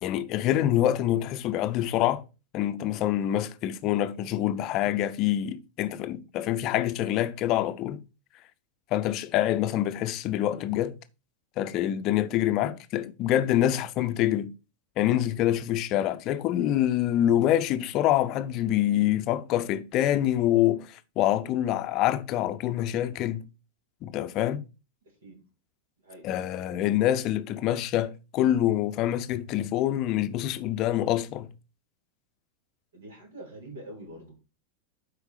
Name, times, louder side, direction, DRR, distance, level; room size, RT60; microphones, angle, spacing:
voice 1, 0.0-2.2 2.5-8.0 8.9-10.9 11.6-14.5 15.0-23.4 24.0-24.6 26.2-31.5, left 12 dB, 40° left, 0.7 m, -26 dB
voice 2, 25.0-25.4 26.0-26.3 32.9-34.3, right 1 dB, 65° right, 3.2 m, -45 dB
8.0 x 5.0 x 4.9 m
figure-of-eight pair, 90°, 0 cm